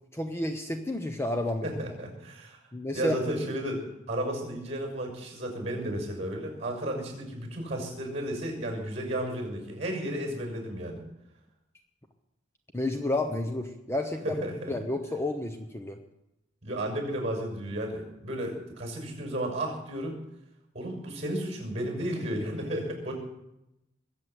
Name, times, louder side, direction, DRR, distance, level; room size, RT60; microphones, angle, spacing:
voice 1, 0.1-1.7 2.7-3.2 12.7-14.4 14.7-16.0, left 1 dB, 15° left, 5 dB, 0.8 m, -30 dB
voice 2, 1.6-2.6 2.9-11.0 14.2-14.8 16.6-20.1 20.7-23.1, right 1 dB, 35° right, 2 dB, 6.0 m, -33 dB
22.0 x 7.5 x 8.1 m, 0.89 s
head